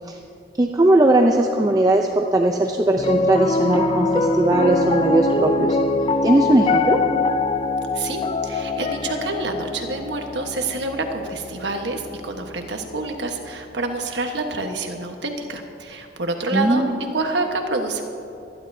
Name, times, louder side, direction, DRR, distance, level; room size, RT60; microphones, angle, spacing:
voice 1, 0.6-5.8 6.2-7.0 16.5-16.9, right 1 dB, 20° right, 2 dB, 0.5 m, -18 dB
Piano, 3.0-13.3, left 3 dB, 30° left, 0.4 m, -24 dB
voice 2, 7.9-18.0, right 2 dB, 80° right, 4 dB, 1.3 m, -27 dB
25.0 x 11.0 x 2.7 m, 2.8 s
head